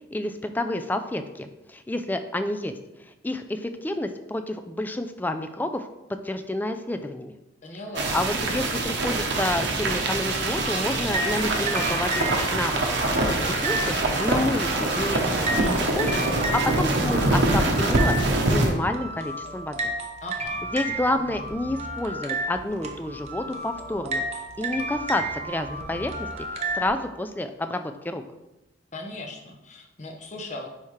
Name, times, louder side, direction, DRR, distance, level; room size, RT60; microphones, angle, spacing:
voice 1, 0.1-5.9 6.2-7.3 8.1-12.8 13.3-13.9 14.2-18.1 18.4-19.8 20.7-24.2 24.6-26.3 26.7-28.2, left 1 dB, 10° left, 8 dB, 0.3 m, -29 dB
voice 2, 7.6-8.1 20.2-20.6 28.9-30.7, left 2 dB, 35° left, 2 dB, 0.9 m, -38 dB
sound 1, 7.9-18.7, right 2 dB, 60° right, 0.9 m, -24 dB
sound 2, 9.6-26.9, right 1 dB, 35° right, 0.6 m, -33 dB
sound 3, 11.1-16.2, left 2 dB, 70° left, 0.9 m, -42 dB
9.7 x 3.5 x 3.2 m, 0.97 s
head